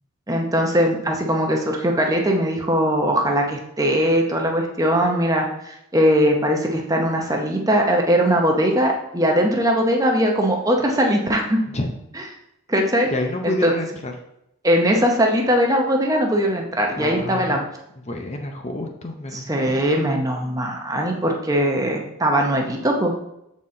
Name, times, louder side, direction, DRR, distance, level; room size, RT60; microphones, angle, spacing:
voice 1, 0.3-11.6 12.7-13.1 13.4-13.7 14.6-17.6 19.3-23.1, equal, 15° right, 1 dB, 0.7 m, -20 dB
voice 2, 13.1-14.1 16.9-17.7 18.0-19.8, left 2 dB, 30° left, 3 dB, 0.6 m, -28 dB
7.3 x 4.2 x 3.7 m, 0.82 s
head